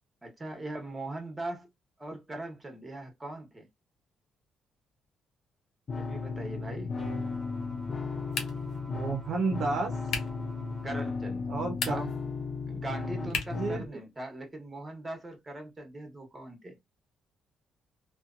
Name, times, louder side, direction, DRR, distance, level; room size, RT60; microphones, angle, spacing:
voice 1, 0.2-1.7 2.0-3.7 5.9-7.0 10.8-11.5 11.8-12.1 12.7-16.8, right 2 dB, 20° right, 1.1 m, -40 dB
sound 1, 5.9-13.9, left 4 dB, 45° left, 0.4 m, -35 dB
sound 2, 7.0-11.1, right 2 dB, ahead, 1.3 m, -48 dB
sound 3, 8.3-8.8 10.1-10.4 11.7-12.2 13.3-13.7, left 5 dB, 75° left, 0.7 m, -35 dB
voice 2, 8.9-10.0 11.5-12.1 13.2-13.8, right 4 dB, 65° right, 0.6 m, -32 dB
2.7 x 2.2 x 2.4 m
cardioid pair, 90°, 0 cm